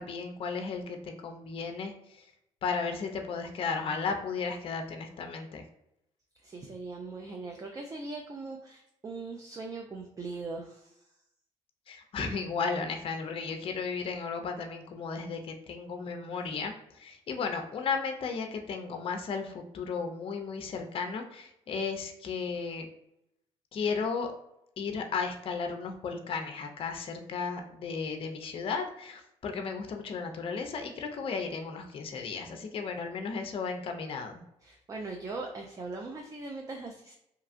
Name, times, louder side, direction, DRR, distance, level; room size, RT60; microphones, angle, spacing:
voice 1, 0.0-2.2 2.6-5.6 11.9-22.9 23.7-24.3 24.8-34.4, left 5 dB, 50° left, 5 dB, 0.4 m, -34 dB
voice 2, 6.4-11.1 34.6-37.1, right 3 dB, 30° right, 2 dB, 0.4 m, -40 dB
2.8 x 2.3 x 2.4 m, 0.81 s
supercardioid pair, 65°, 12 cm